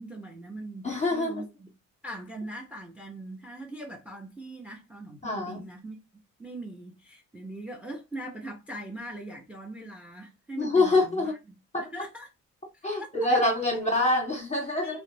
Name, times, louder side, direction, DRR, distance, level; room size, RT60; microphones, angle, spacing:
voice 1, 0.0-1.7 2.0-6.0 6.4-11.4 11.8-12.3 12.7-13.5 14.8-15.0, right 1 dB, 5° right, 0.6 m, -41 dB
voice 2, 0.8-1.4 5.2-5.6 10.6-11.3 11.7-11.8 12.8-15.0, left 2 dB, 20° left, 0.9 m, -25 dB
2.4 x 2.0 x 3.1 m
cardioid pair, 90°, 30 cm